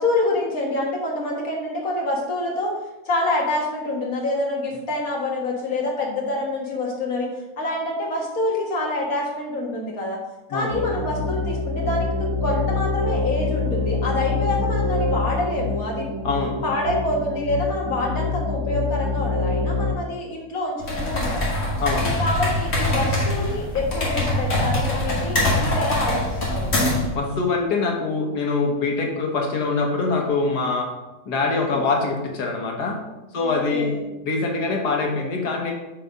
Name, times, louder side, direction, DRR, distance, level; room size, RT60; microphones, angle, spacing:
voice 1, 0.0-2.7 3.1-7.3 7.6-10.2 10.5-16.1 16.6-21.5 22.0-26.8 31.6-31.8 33.4-34.1, left 2 dB, 60° left, -1 dB, 1.9 m, -26 dB
sound 1, 10.7-19.9, left 3 dB, 55° right, 1.5 m, -25 dB
sound 2, 20.8-27.1, left 1 dB, 45° left, 1.8 m, -23 dB
voice 2, 21.8-22.1 27.2-30.9 31.3-33.0 33.3-33.9 34.2-35.7, left 3 dB, 85° left, 1 dB, 1.8 m, -24 dB
6.6 x 4.0 x 5.1 m, 1.0 s
omnidirectional pair, 1.7 m